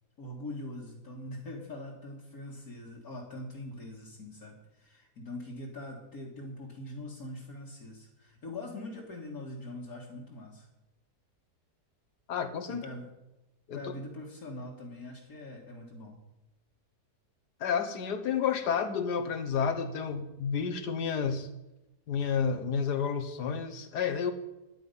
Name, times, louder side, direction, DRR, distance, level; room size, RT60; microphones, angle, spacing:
voice 1, 0.2-10.7 12.7-13.1 13.7-16.2, left 1 dB, 60° left, -3 dB, 2.3 m, -43 dB
voice 2, 12.3-12.8 13.7-13.8 17.6-21.5 22.1-24.3, left 6 dB, 80° left, 9 dB, 1.7 m, -30 dB
12.5 x 10.5 x 5.6 m, 0.96 s
omnidirectional pair, 1.7 m